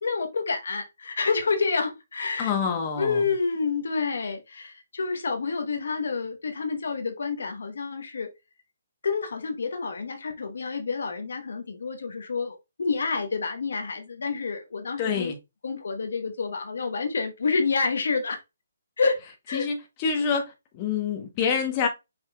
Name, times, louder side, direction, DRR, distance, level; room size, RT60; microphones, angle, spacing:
voice 1, 0.0-2.5 3.0-8.3 9.0-15.4 15.6-18.4 19.0-19.2 19.5-19.7 20.2-20.3, left 4 dB, 70° left, 1.0 m, -28 dB
voice 2, 2.4-3.1 15.0-15.3 19.5-19.7 20.0-20.4 20.8-21.9, left 6 dB, 30° left, 1.0 m, -26 dB
5.4 x 4.3 x 2.3 m
hypercardioid pair, 150°, 0 cm